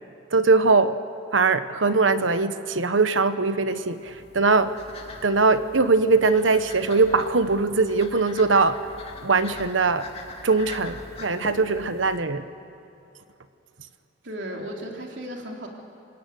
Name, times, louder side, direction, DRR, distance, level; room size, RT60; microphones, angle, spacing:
voice 1, 0.3-1.0 1.3-4.7 5.2-8.8 9.2-10.0 10.4-12.4, right 4 dB, 90° right, 11 dB, 1.1 m, -21 dB
sound 1, 3.7-12.2, left 2 dB, 30° left, 2.6 m, -43 dB
voice 2, 14.2-15.7, equal, 70° right, 0 dB, 3.5 m, -35 dB
27.5 x 17.5 x 9.3 m, 2.7 s
head